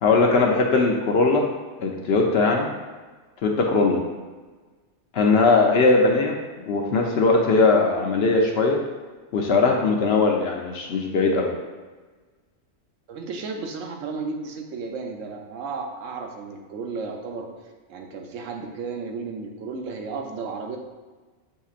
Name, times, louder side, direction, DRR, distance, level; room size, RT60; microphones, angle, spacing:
voice 1, 0.0-1.5 1.8-2.7 3.4-4.0 5.1-8.8 9.3-11.5, left 3 dB, 65° left, 1 dB, 0.8 m, -20 dB
voice 2, 13.1-17.5 17.9-20.8, right 4 dB, 90° right, 3 dB, 1.0 m, -33 dB
7.0 x 2.8 x 2.4 m, 1.3 s
omnidirectional pair, 1.3 m